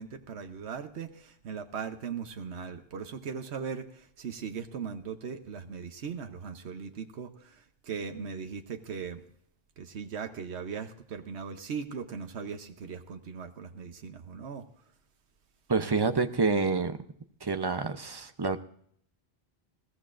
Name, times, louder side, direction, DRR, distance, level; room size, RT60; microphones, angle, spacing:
voice 1, 0.0-9.2 9.8-14.6, right 6 dB, 85° right, 6 dB, 1.2 m, -39 dB
voice 2, 15.7-17.0 17.4-18.6, right 4 dB, 25° right, 9 dB, 0.6 m, -27 dB
21.0 x 16.0 x 2.5 m, 0.66 s
omnidirectional pair, 1.1 m